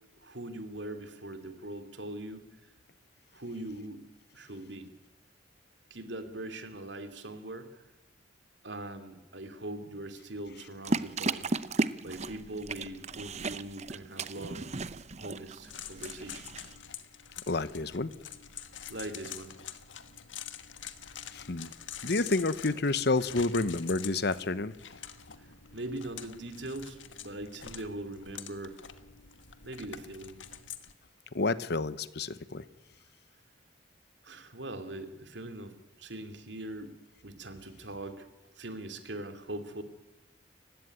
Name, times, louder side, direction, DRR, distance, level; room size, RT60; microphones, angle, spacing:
voice 1, 0.2-2.4 3.3-4.1 4.3-4.9 5.9-7.7 8.6-11.5 12.0-14.7 15.2-16.5 18.9-19.5 25.7-28.8 29.6-30.4 34.2-38.3 38.6-39.8, right 1 dB, 65° right, 8 dB, 2.8 m, -41 dB
sound 1, 10.8-16.8, right 3 dB, 35° right, 0.8 m, -35 dB
sound 2, 15.6-30.9, left 9 dB, 80° left, 1.5 m, -46 dB
voice 2, 17.5-18.1 21.3-21.7 22.0-24.7 31.3-32.6, left 3 dB, 60° left, 15 dB, 1.0 m, -29 dB
29.5 x 16.0 x 9.7 m, 1.0 s
head